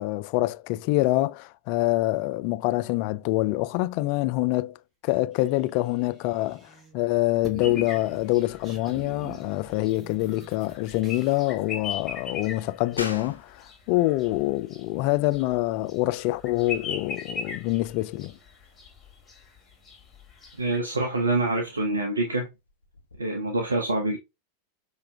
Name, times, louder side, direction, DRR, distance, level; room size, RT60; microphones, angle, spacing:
voice 1, 0.0-18.3, left 18 dB, 45° left, 0.3 m, -26 dB
sound 1, 5.3-7.0 7.3-11.4, right 4 dB, 25° right, 1.3 m, -46 dB
sound 2, 7.6-20.8, left 5 dB, 20° left, 2.0 m, -40 dB
bath mic far, 13.0-23.2, left 3 dB, 80° left, 1.1 m, -46 dB
voice 2, 20.6-22.5 23.2-24.2, right 2 dB, 75° right, 0.8 m, -26 dB
5.7 x 3.2 x 2.4 m
figure-of-eight pair, 90°, 0 cm